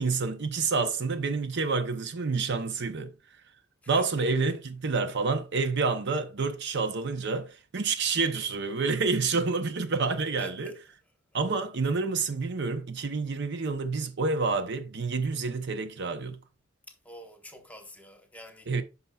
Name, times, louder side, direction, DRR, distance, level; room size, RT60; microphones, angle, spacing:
voice 1, 0.0-3.1 3.9-10.8 11.3-16.4 18.7-18.8, right 4 dB, 60° right, 0.7 m, -28 dB
voice 2, 3.9-4.6 8.3-8.6 10.4-10.7 16.9-18.7, equal, 5° left, 1.1 m, -47 dB
9.5 x 5.6 x 2.3 m
head